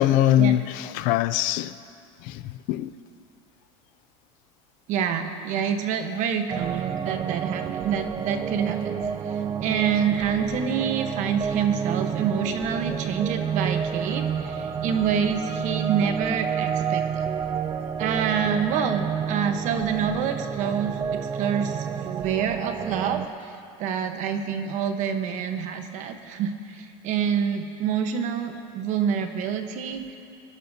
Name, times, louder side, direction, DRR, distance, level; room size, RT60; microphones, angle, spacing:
voice 1, 0.0-1.8 2.2-3.0, left 13 dB, 50° left, 0.4 m, -22 dB
voice 2, 4.9-17.3 18.0-21.9 22.2-30.2, right 7 dB, 45° right, 1.0 m, -27 dB
sound 1, 6.5-23.3, right 7 dB, 20° right, 0.4 m, -29 dB
24.0 x 11.0 x 2.7 m
supercardioid pair, 150°, 18 cm